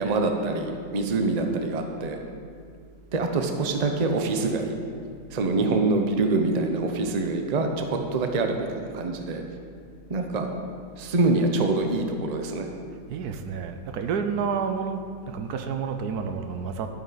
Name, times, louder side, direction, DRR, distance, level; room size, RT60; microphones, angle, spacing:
voice 1, 0.0-2.2 3.1-4.7 5.3-9.4 10.1-10.5 11.0-12.7, right 3 dB, 40° right, 4 dB, 0.6 m, -25 dB
voice 2, 13.1-16.9, right 6 dB, 75° right, 7 dB, 1.2 m, -30 dB
11.5 x 8.7 x 4.1 m, 2.2 s
omnidirectional pair, 1.7 m